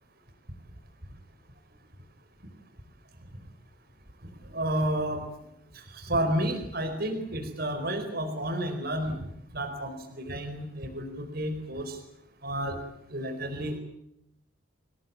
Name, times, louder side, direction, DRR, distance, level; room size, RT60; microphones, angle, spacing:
voice 1, 4.5-5.2 5.7-9.3 9.5-12.0 12.4-12.8 13.1-13.8, right 1 dB, 50° right, 7 dB, 4.5 m, -31 dB
27.5 x 20.0 x 8.7 m, 0.79 s
head